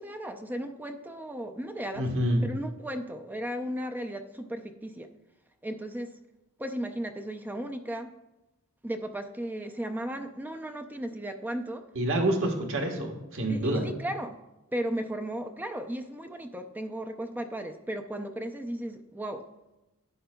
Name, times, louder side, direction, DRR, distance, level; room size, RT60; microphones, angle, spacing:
voice 1, 0.0-2.1 2.4-5.1 5.6-6.1 6.6-8.1 8.8-11.8 13.5-14.4 14.7-19.4, right 1 dB, 10° right, 6 dB, 0.4 m, -35 dB
voice 2, 1.9-2.4 11.9-13.8, right 1 dB, 65° right, 3 dB, 1.3 m, -27 dB
11.0 x 8.5 x 2.2 m, 0.98 s
head